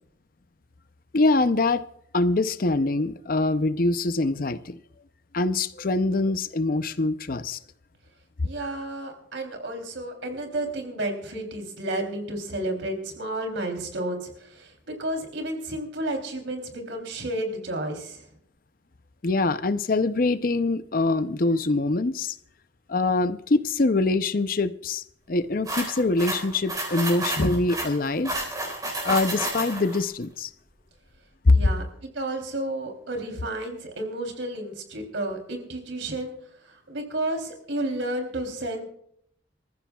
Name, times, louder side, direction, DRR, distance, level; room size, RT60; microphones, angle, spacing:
voice 1, 1.1-1.8 2.1-4.8 5.3-7.6 19.2-22.4 22.9-28.3 29.0-30.5 31.4-31.6, left 2 dB, 50° left, 0.6 m, -24 dB
voice 2, 8.4-18.3 31.5-36.3 36.6-38.8, right 1 dB, 85° right, 3.3 m, -32 dB
sound 1, 25.7-30.0, right 1 dB, 20° right, 4.1 m, -31 dB
26.5 x 14.5 x 2.3 m
head